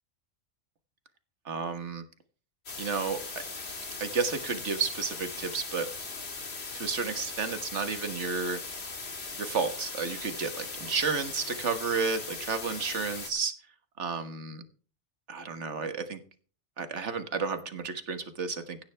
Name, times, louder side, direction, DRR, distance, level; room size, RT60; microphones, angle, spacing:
voice 1, 1.4-2.0 2.8-3.7 4.0-5.9 6.7-8.6 9.4-13.5 14.0-14.6 15.3-16.2 16.8-18.8, right 5 dB, 70° right, 9 dB, 1.7 m, -32 dB
sound 1, 2.7-13.3, left 3 dB, 60° left, 2.3 m, -39 dB
16.0 x 10.5 x 3.4 m, 0.39 s
omnidirectional pair, 1.2 m